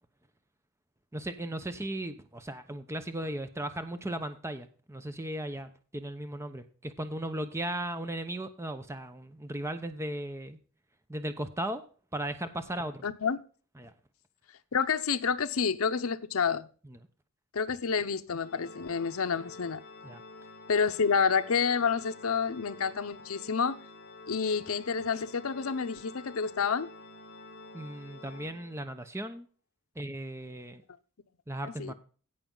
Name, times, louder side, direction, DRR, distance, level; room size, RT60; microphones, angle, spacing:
voice 1, 1.1-10.6 11.1-11.8 12.1-13.0 13.8-13.9 16.9-17.0 20.0-20.2 27.7-29.5 30.0-30.8 31.5-31.9, right 1 dB, 10° right, 0.8 m, -36 dB
voice 2, 13.0-13.4 14.7-16.7 17.5-19.8 20.7-23.8 24.3-26.9 31.6-31.9, left 6 dB, 75° left, 0.7 m, -29 dB
Organ, 18.4-29.1, left 3 dB, 40° left, 4.3 m, -49 dB
16.5 x 5.8 x 3.9 m
head